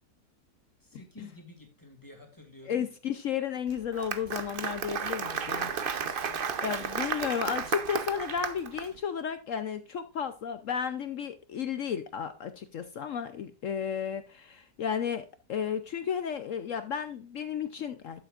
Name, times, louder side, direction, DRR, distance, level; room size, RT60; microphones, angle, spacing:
voice 1, 0.8-2.8 5.3-5.8 6.1-6.5, left 1 dB, 10° left, 2.2 m, -51 dB
voice 2, 2.6-5.7 6.6-18.2, left 7 dB, 60° left, 0.9 m, -33 dB
Applause, 3.7-8.9, right 6 dB, 45° right, 0.7 m, -33 dB
11.5 x 7.2 x 2.5 m
omnidirectional pair, 1.8 m